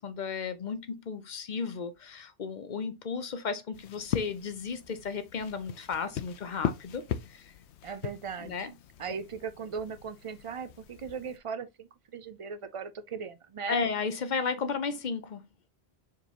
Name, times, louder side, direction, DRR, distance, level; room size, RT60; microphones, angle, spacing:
voice 1, 0.0-7.5 8.4-8.7 13.7-15.5, left 5 dB, 50° left, 0.7 m, -34 dB
sound 1, 3.7-11.4, left 10 dB, 85° left, 0.9 m, -39 dB
voice 2, 7.8-8.7 9.0-13.8, right 6 dB, 55° right, 0.3 m, -38 dB
4.7 x 3.9 x 2.8 m
omnidirectional pair, 1.1 m